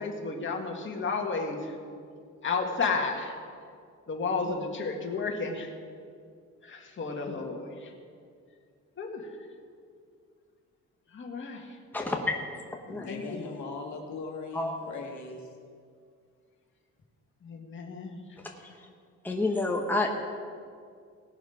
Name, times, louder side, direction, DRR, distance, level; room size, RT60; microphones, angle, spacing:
voice 1, 0.0-1.7 2.4-3.3 4.1-5.7 6.6-7.9 9.0-9.2 11.1-11.6 13.1-13.4 17.4-18.2, left 4 dB, 40° left, 1 dB, 2.0 m, -32 dB
voice 2, 11.9-12.4 12.9-13.1 14.5-14.7 19.2-20.1, left 2 dB, 5° left, 1 dB, 1.3 m, -28 dB
voice 3, 12.9-15.5, left 3 dB, 70° left, 1 dB, 1.8 m, -39 dB
18.5 x 6.2 x 5.0 m, 2.2 s
cardioid pair, 90°, 30 cm